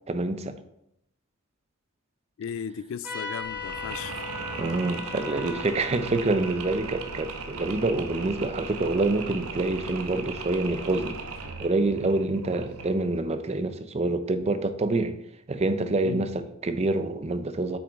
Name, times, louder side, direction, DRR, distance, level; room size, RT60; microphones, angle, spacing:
voice 1, 0.1-0.5 4.6-11.2 11.6-15.1 15.5-17.8, right 2 dB, 30° right, 0.5 m, -26 dB
voice 2, 2.4-4.2 16.0-16.3, left 7 dB, 60° left, 0.3 m, -36 dB
Trumpet, 3.0-8.1, left 3 dB, 10° right, 3.1 m, -39 dB
Mechanisms, 3.4-13.2, right 4 dB, 75° right, 0.9 m, -38 dB
8.0 x 6.1 x 3.5 m
head